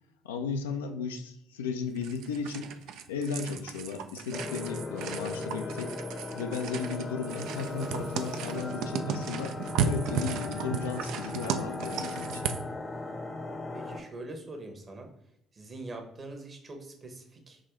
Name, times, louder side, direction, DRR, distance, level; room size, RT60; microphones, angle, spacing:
voice 1, 0.2-2.7 3.1-6.0 6.3-9.6 9.8-12.5, left 5 dB, 80° left, 6 dB, 0.3 m, -35 dB
sound 1, 2.0-12.7, right 7 dB, 65° right, 0.3 m, -35 dB
sound 2, 4.3-14.0, left 3 dB, 25° left, 0.6 m, -38 dB
voice 2, 13.7-15.1 15.5-17.6, right 2 dB, 40° right, 4 dB, 1.0 m, -43 dB
5.0 x 2.7 x 3.6 m, 0.79 s
figure-of-eight pair, 50°, 0 cm